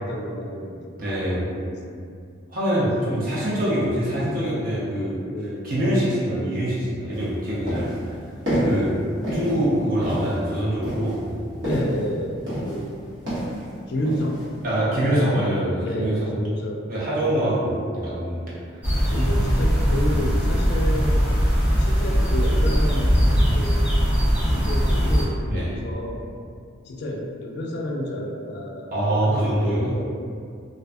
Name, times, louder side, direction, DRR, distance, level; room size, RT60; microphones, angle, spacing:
voice 1, 0.0-1.0 1.3-2.1 5.3-5.8 11.6-13.2 13.9-14.4 15.8-16.8 18.8-21.2 21.8-24.0 24.5-26.3 26.9-30.1, equal, 60° left, 0 dB, 0.3 m, -30 dB
voice 2, 1.0-1.4 2.5-5.2 5.6-8.2 8.6-8.9 9.3-11.5 14.6-16.3 16.9-18.5 25.5-25.7 28.9-30.0, right 1 dB, 50° right, -8 dB, 0.7 m, -24 dB
sound 1, 7.1-7.3 7.7-8.0 8.5-8.9 9.2-9.6 10.0-10.4 10.8-12.0 12.5-12.9 13.3-13.6 14.1-14.5, equal, 65° right, 1.1 m, -27 dB
sound 2, 18.8-25.2, equal, 5° right, 0.5 m, -20 dB
2.5 x 2.4 x 2.3 m, 2.3 s
head